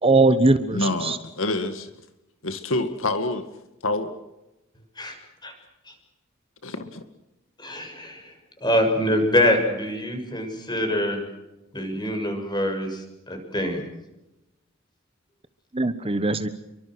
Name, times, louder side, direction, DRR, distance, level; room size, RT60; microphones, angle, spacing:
voice 1, 0.0-1.2 15.7-16.5, right 2 dB, 30° right, 11 dB, 1.2 m, -20 dB
voice 2, 0.7-1.9 2.4-3.5 3.8-4.2 6.6-7.0, left 2 dB, 70° left, 8 dB, 2.1 m, -27 dB
voice 3, 7.6-8.3 8.6-11.2 11.7-13.8, left 1 dB, 20° left, 5 dB, 6.9 m, -25 dB
29.5 x 24.0 x 6.3 m, 0.95 s
head